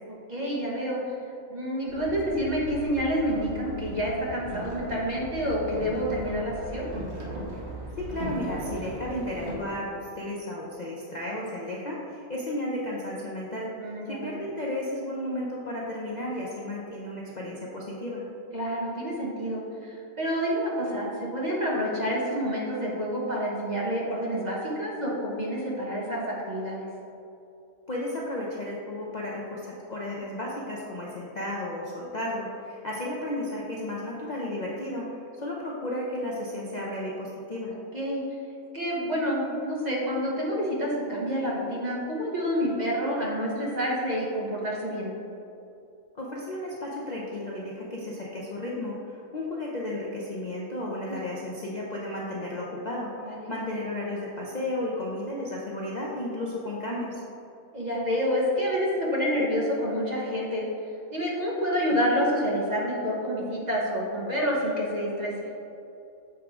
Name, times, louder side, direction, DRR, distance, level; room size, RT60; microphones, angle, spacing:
voice 1, 0.3-1.1 1.5-6.9 13.8-14.4 18.5-26.8 37.9-38.2 38.7-45.1 53.2-53.4 57.7-60.7 61.1-65.3, equal, 35° right, -5 dB, 1.2 m, -28 dB
Boat Water vehicle, 1.9-9.5, right 1 dB, 55° right, 1.4 m, -38 dB
voice 2, 8.0-13.7 14.1-18.2 27.9-37.7 46.1-57.2, left 1 dB, 45° left, -4 dB, 0.6 m, -33 dB
7.3 x 3.6 x 4.8 m, 2.7 s
omnidirectional pair, 1.4 m